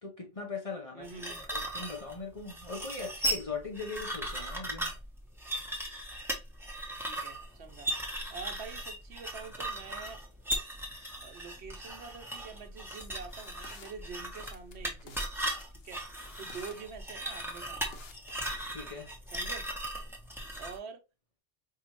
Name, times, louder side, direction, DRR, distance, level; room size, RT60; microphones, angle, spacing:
voice 1, 0.0-1.1 1.4-5.0 18.7-19.1, left 4 dB, 35° left, 0.8 m, -40 dB
voice 2, 0.9-1.5 7.0-7.9 8.3-10.2 11.2-15.3 15.7-16.0 16.4-18.1 19.3-19.7 20.6-21.0, right 5 dB, 65° right, 0.9 m, -46 dB
sound 1, 1.0-20.8, right 1 dB, ahead, 0.9 m, -37 dB
sound 2, 12.9-13.9 14.4-15.3 15.6-16.8 17.2-18.6, left 6 dB, 60° left, 0.9 m, -53 dB
5.0 x 2.7 x 2.9 m
omnidirectional pair, 1.2 m